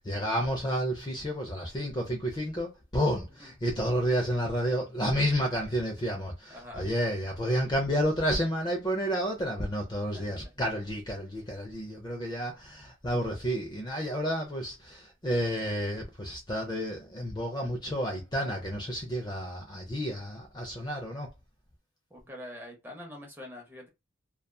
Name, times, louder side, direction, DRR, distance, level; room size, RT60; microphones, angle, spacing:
voice 1, 0.0-21.3, equal, 20° left, 0.5 m, -30 dB
voice 2, 6.5-6.9 10.1-10.5 22.1-23.9, left 1 dB, 10° right, 0.7 m, -45 dB
2.7 x 2.3 x 2.3 m
head